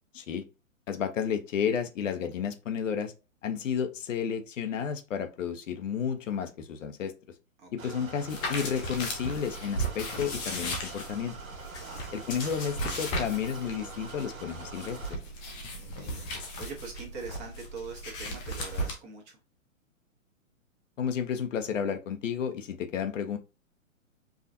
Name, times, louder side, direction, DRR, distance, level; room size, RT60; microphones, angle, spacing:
voice 1, 0.1-0.4 0.9-3.1 3.4-7.1 7.7-11.4 12.1-15.2 21.0-23.4, left 7 dB, 65° left, 0.8 m, -32 dB
voice 2, 7.6-8.0 11.8-12.0 15.8-19.4, right 4 dB, 25° right, 1.2 m, -43 dB
sound 1, 7.8-15.2, right 3 dB, 80° right, 1.0 m, -45 dB
sound 2, 8.3-18.9, equal, 10° left, 0.4 m, -36 dB
4.8 x 2.4 x 2.5 m
hypercardioid pair, 125°, 40 cm